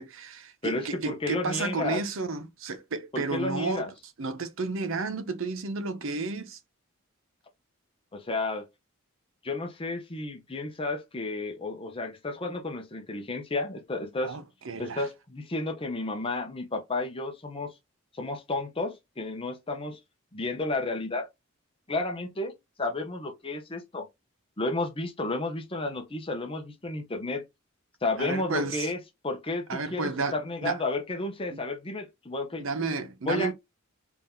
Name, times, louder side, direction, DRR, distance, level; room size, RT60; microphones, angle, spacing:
voice 1, 0.0-3.8 4.2-6.6 14.2-15.1 28.2-28.9 29.7-30.8 31.5-31.6 32.6-33.5, right 3 dB, 65° right, 0.7 m, -32 dB
voice 2, 0.6-2.0 3.1-3.9 8.1-8.7 9.4-14.4 14.8-17.7 18.1-20.0 20.3-21.3 21.9-24.1 24.6-27.4 28.0-29.0 29.2-32.6 33.2-33.5, left 2 dB, 25° left, 0.8 m, -32 dB
3.5 x 2.8 x 3.5 m
head